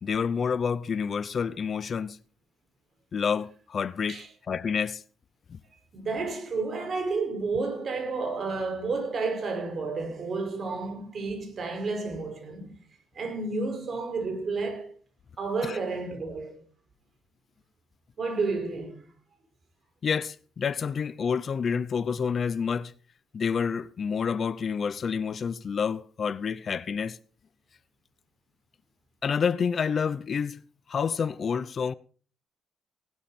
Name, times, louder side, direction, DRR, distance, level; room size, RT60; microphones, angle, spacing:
voice 1, 0.0-2.2 3.1-5.0 5.5-5.6 15.6-15.8 20.0-22.9 23.3-27.2 29.2-30.6 30.9-31.9, left 6 dB, 50° left, 0.7 m, -28 dB
voice 2, 5.9-12.8 13.1-14.9 15.4-16.6 18.2-19.0, right 3 dB, 50° right, 5.5 m, -31 dB
18.5 x 12.5 x 4.4 m
cardioid pair, 90°, 0 cm